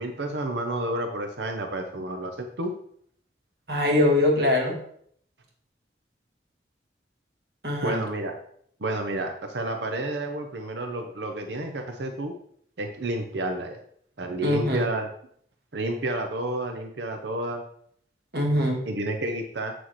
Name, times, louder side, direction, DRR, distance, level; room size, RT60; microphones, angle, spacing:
voice 1, 0.0-2.7 7.8-8.4 8.8-12.3 12.8-13.8 14.2-15.1 15.7-17.6 18.9-19.7, right 1 dB, 80° right, 5 dB, 0.7 m, -30 dB
voice 2, 3.7-4.8 7.6-8.0 14.4-14.9 18.3-18.8, left 1 dB, 65° right, 0 dB, 1.8 m, -22 dB
7.8 x 6.1 x 3.1 m, 0.65 s
head